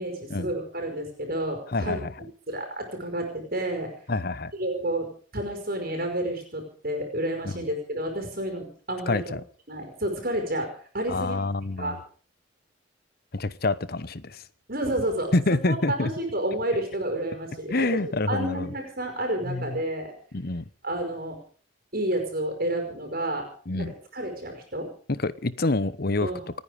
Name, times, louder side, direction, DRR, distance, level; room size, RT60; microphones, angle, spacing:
voice 1, 0.0-2.0 2.5-3.9 4.6-5.1 5.3-9.3 9.7-11.5 11.8-12.0 14.7-20.1 20.8-21.4 21.9-23.5 23.8-24.9 26.2-26.4, right 1 dB, 50° right, 5.2 m, -30 dB
voice 2, 1.7-2.1 4.1-4.5 7.4-7.6 9.1-9.4 11.1-12.0 13.3-14.4 15.3-16.1 17.7-18.7 19.4-19.8 20.3-20.6 23.7-23.9 25.1-26.3, left 2 dB, 55° left, 1.0 m, -27 dB
29.0 x 9.8 x 5.1 m
head